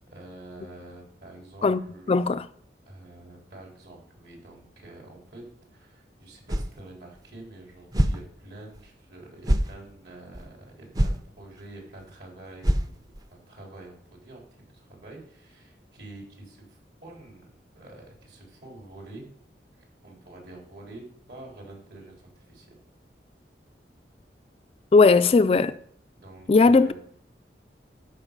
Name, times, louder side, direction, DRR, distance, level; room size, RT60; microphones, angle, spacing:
voice 1, 0.1-2.3 2.9-5.4 5.7-17.5 17.8-19.2 19.7-22.8 26.2-26.9, right 2 dB, 65° right, 3.8 m, -47 dB
voice 2, 2.1-2.4 24.9-25.8 26.5-26.9, left 4 dB, 35° left, 0.3 m, -18 dB
sound 1, 6.5-6.8 7.2-7.3 7.9-8.2 8.7-8.8 9.4-9.7 10.3-10.4 10.9-11.2 11.6-11.7 12.0-12.1 12.6-13.2, equal, 20° right, 0.6 m, -24 dB
13.0 x 5.4 x 5.3 m
head